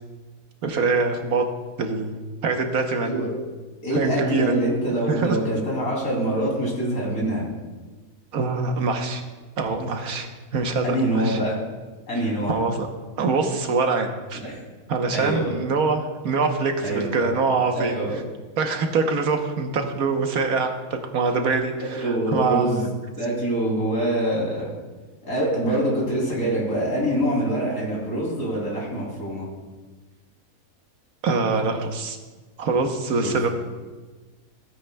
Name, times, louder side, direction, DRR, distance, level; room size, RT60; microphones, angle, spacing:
voice 1, 0.6-1.4 1.8-2.1 2.4-3.4 3.9-4.5 5.1-5.4 8.3-9.2 9.6-11.4 12.5-12.9 13.2-14.4 14.9-18.0 18.6-22.8 31.2-32.2 32.6-33.5, right 4 dB, 65° right, 5 dB, 1.4 m, -24 dB
voice 2, 3.8-7.5 10.8-11.6 12.1-12.6 14.3-14.6 15.1-15.5 16.8-17.3 17.7-18.2 22.0-22.9 23.2-24.7 25.2-29.5 33.2-33.4, right 1 dB, 60° left, -4 dB, 3.5 m, -25 dB
16.0 x 9.4 x 2.2 m, 1.3 s
omnidirectional pair, 1.7 m